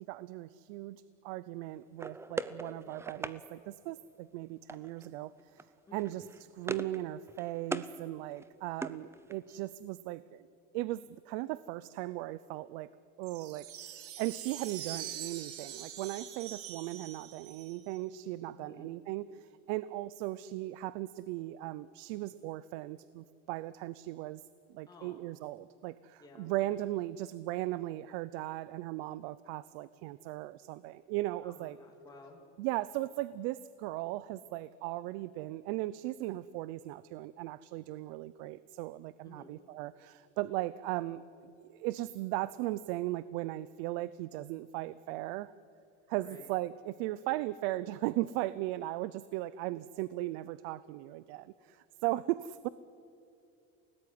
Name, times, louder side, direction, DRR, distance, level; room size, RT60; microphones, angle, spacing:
voice 1, 0.0-5.7 5.9-10.5 10.7-12.9 13.2-24.4 24.7-31.8 32.6-45.5 46.1-52.7, right 16 dB, 90° right, 17 dB, 0.7 m, -37 dB
sound 1, 2.0-3.4 4.7-5.1 5.4-5.6 5.9-7.0 7.3-7.9 8.3-9.6, right 3 dB, 10° right, 0.6 m, -40 dB
voice 2, 5.9-6.3 18.5-18.9 24.9-25.3 26.2-26.5 31.4-32.4 39.2-39.6 46.2-46.5, left 3 dB, 10° left, 0 dB, 2.8 m, -54 dB
sound 2, 13.2-18.0, right 10 dB, 45° right, 2.2 m, -44 dB
29.5 x 18.5 x 9.6 m, 2.7 s
cardioid pair, 165°, 31 cm